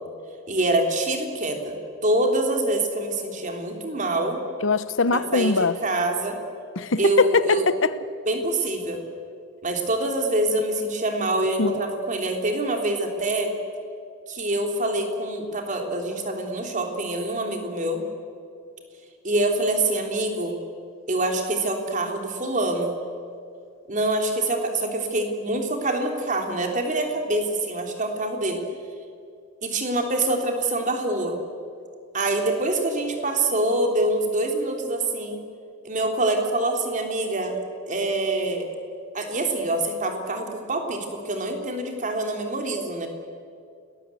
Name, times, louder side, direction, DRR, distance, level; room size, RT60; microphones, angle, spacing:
voice 1, 0.5-1.7 2.0-4.4 5.1-6.4 7.0-7.7 8.2-9.0 9.6-13.5 14.3-18.0 19.2-20.6 21.1-23.0 23.9-28.6 29.6-31.4 32.1-35.4 35.8-37.6 37.9-38.6 39.1-43.1, right 2 dB, 40° right, 3.3 m, -25 dB
voice 2, 4.6-5.7 6.8-8.0 11.6-11.7, left 4 dB, 85° left, 0.9 m, -21 dB
29.5 x 20.0 x 8.5 m
head